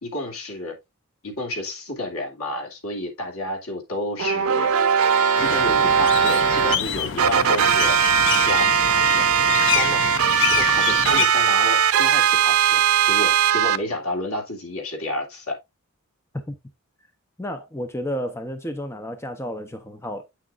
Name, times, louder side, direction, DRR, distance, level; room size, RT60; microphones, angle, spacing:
voice 1, 0.0-0.8 1.2-4.7 5.4-8.0 8.5-10.1 10.5-15.6, left 1 dB, 80° left, 2.5 m, -31 dB
sound 1, 4.2-6.8 7.2-13.8, right 7 dB, 80° right, 0.6 m, -19 dB
sound 2, 5.4-11.3, left 8 dB, 60° left, 0.7 m, -27 dB
voice 2, 17.4-20.2, equal, 10° left, 0.7 m, -31 dB
8.3 x 6.4 x 2.4 m
head